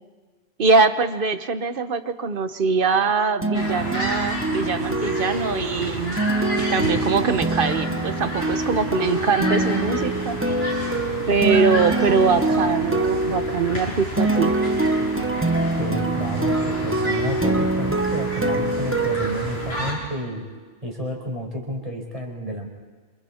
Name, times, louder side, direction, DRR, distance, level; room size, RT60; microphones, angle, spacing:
voice 1, 0.6-6.2 6.6-10.4 11.3-14.6, right 4 dB, 55° right, 11 dB, 1.2 m, -22 dB
sound 1, 3.4-20.1, right 2 dB, 10° right, 1.0 m, -25 dB
sound 2, 3.5-19.9, left 1 dB, 60° left, 8.3 m, -31 dB
voice 2, 15.8-20.5 20.8-22.7, equal, 30° right, 0 dB, 5.1 m, -30 dB
28.0 x 27.5 x 4.4 m, 1.4 s
omnidirectional pair, 1.2 m